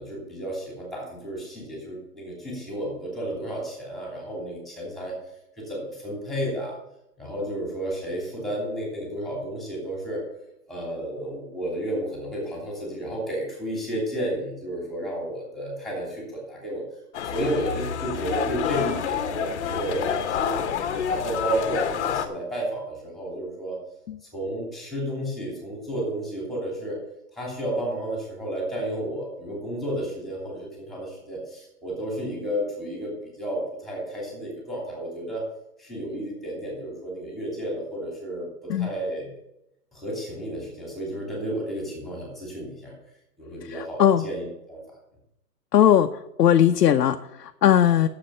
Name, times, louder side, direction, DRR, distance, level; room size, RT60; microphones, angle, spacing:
voice 1, 0.0-5.1 5.6-6.8 7.2-10.2 10.7-16.8 17.2-20.7 21.0-23.8 24.3-27.0 27.3-35.4 35.8-39.3 39.9-42.9 43.4-44.8, right 1 dB, ahead, -3 dB, 2.9 m, -32 dB
sound 1, 17.1-22.3, left 7 dB, 45° left, 1.0 m, -28 dB
voice 2, 45.7-46.1 46.4-48.1, left 10 dB, 85° left, 6 dB, 0.8 m, -18 dB
10.0 x 7.6 x 5.6 m, 0.84 s
hypercardioid pair, 160°, 48 cm